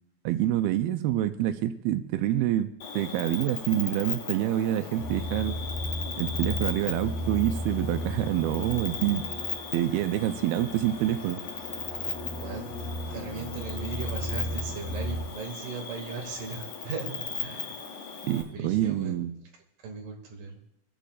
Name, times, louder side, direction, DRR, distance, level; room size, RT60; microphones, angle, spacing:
voice 1, 0.2-5.6 6.2-9.2 9.7-11.4 18.2-19.3, right 13 dB, 90° right, 9 dB, 2.2 m, -27 dB
Cricket, 2.8-18.4, left 6 dB, 60° left, 1.7 m, -37 dB
sound 1, 5.0-15.3, equal, 35° left, 3.7 m, -35 dB
voice 2, 12.4-12.7 13.1-17.9 18.5-19.2 19.8-20.6, right 5 dB, 55° right, 0 dB, 3.3 m, -38 dB
26.0 x 9.1 x 2.4 m, 0.76 s
omnidirectional pair, 5.0 m